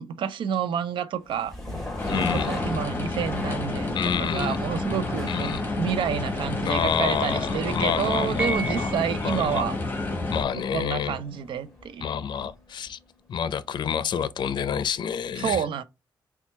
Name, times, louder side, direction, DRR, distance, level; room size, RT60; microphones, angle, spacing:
voice 1, 0.0-1.5 2.1-9.8 10.7-12.2 15.4-15.8, right 8 dB, 90° right, 0.5 m, -29 dB
sound 1, 1.2-13.1, left 2 dB, 5° left, 2.1 m, -38 dB
voice 2, 2.0-2.6 3.9-4.6 5.3-5.6 6.6-9.7 10.3-11.2 12.0-13.0 13.3-15.6, left 8 dB, 65° left, 0.5 m, -28 dB
sound 2, 2.0-10.4, left 2 dB, 25° left, 1.2 m, -30 dB
Piano, 8.4-9.5, right 2 dB, 15° right, 1.2 m, -32 dB
4.4 x 2.3 x 4.2 m
cardioid pair, 100°, 8 cm